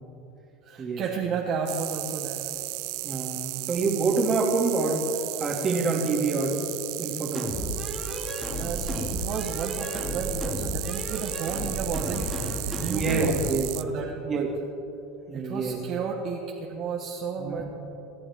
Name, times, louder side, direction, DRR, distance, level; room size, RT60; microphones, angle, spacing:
voice 1, 0.6-2.5 8.6-13.4 13.7-14.5 15.3-17.6, right 6 dB, 40° right, -1 dB, 1.4 m, -33 dB
sound 1, 1.7-13.8, right 21 dB, 60° right, 0.5 m, -35 dB
voice 2, 3.0-5.1 5.4-6.6 7.0-7.6 12.9-13.7 14.3-14.5 15.3-15.8 17.4-17.6, right 3 dB, 25° right, 0 dB, 2.6 m, -26 dB
sound 2, 7.4-13.5, equal, 10° left, 2.8 m, -33 dB
27.5 x 11.5 x 3.7 m, 2.9 s
supercardioid pair, 145°, 0 cm